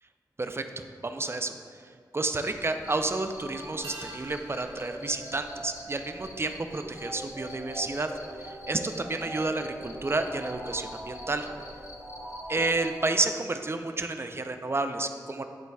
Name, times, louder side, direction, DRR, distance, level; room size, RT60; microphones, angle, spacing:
voice 1, 1.0-1.5 2.1-8.1 8.4-11.5 12.5-15.4, right 2 dB, 35° right, 7 dB, 0.5 m, -30 dB
Cricket, 2.3-13.0, left 2 dB, 45° left, 0.8 m, -49 dB
sound 1, 3.0-13.7, right 1 dB, 15° right, 1.0 m, -43 dB
sound 2, 3.8-8.6 8.8-8.9, right 3 dB, 90° right, 0.9 m, -50 dB
11.0 x 4.5 x 2.3 m, 2.2 s
cardioid pair, 55°, 7 cm